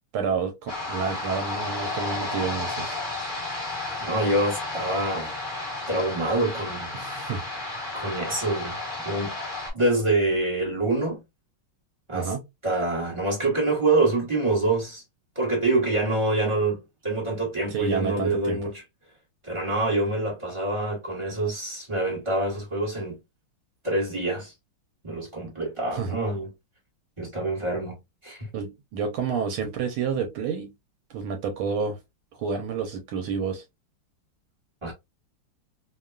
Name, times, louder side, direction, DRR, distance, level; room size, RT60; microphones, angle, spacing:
voice 1, 0.1-3.0 6.9-7.4 12.1-12.4 17.7-18.6 25.9-26.2 28.5-30.7 31.1-32.0 32.3-33.6, right 5 dB, 80° right, 1.5 m, -29 dB
sound 1, 0.7-9.7, left 2 dB, 30° left, 1.0 m, -32 dB
voice 2, 4.0-5.3 5.9-6.9 7.9-8.8 9.0-9.4 9.7-11.2 12.1-12.3 12.6-15.0 15.3-16.8 17.0-18.7 19.4-23.2 23.8-24.5 25.0-26.5 27.2-28.0 28.2-28.5 34.8-34.9, right 2 dB, 20° right, 0.9 m, -26 dB
3.5 x 2.2 x 2.3 m
omnidirectional pair, 2.3 m